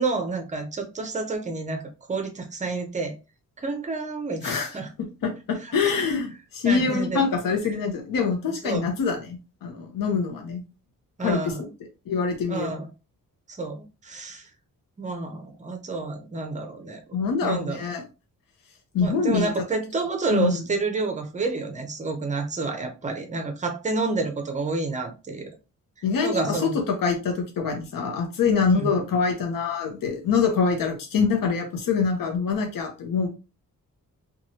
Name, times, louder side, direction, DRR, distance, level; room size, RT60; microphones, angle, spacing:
voice 1, 0.0-1.8 2.1-3.1 3.6-4.9 5.6-5.8 6.6-7.2 8.6-8.9 11.2-11.7 12.5-12.9 13.5-14.5 15.0-17.0 17.4-17.8 19.0-25.5 26.2-26.7 28.7-28.9, right 3 dB, 20° right, 0.5 m, -29 dB
voice 2, 4.4-4.8 5.2-10.6 11.2-11.5 12.1-12.7 17.1-18.0 18.9-19.5 20.3-20.6 26.0-33.3, left 5 dB, 75° left, 0.7 m, -25 dB
3.0 x 2.3 x 2.7 m
wide cardioid pair, 165°, 34 cm